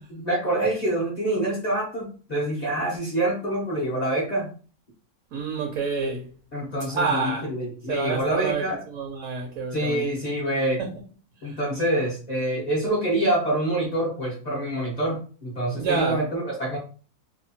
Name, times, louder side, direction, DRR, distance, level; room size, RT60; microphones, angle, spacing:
voice 1, 0.1-4.5 6.5-8.8 9.7-10.8 11.4-16.8, right 1 dB, 45° left, 0.5 m, -26 dB
voice 2, 5.3-6.3 6.9-7.5 7.9-10.1 10.8-10.9 11.4-11.6 15.8-16.2, right 5 dB, 70° right, 0.8 m, -28 dB
2.8 x 2.2 x 2.7 m
omnidirectional pair, 1.6 m